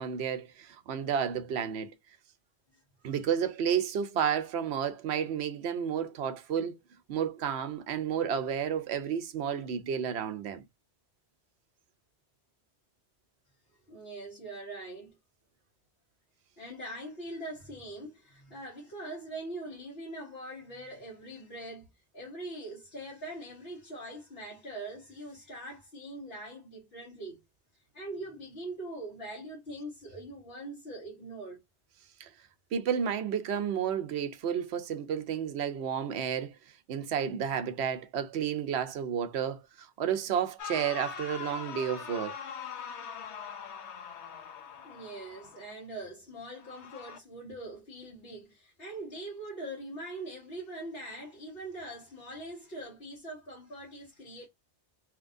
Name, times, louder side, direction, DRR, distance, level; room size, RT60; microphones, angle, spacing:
voice 1, 0.0-1.9 3.0-6.8 7.1-10.6 32.2-32.3 32.7-36.5 36.9-42.4, right 8 dB, 70° right, 0.9 m, -31 dB
voice 2, 13.9-15.1 16.6-27.4 27.9-31.6 44.8-54.5, right 1 dB, 60° left, 1.4 m, -42 dB
sound 1, 40.6-45.7 46.6-47.2, left 7 dB, 80° left, 0.9 m, -42 dB
3.0 x 2.9 x 2.5 m
omnidirectional pair, 1.2 m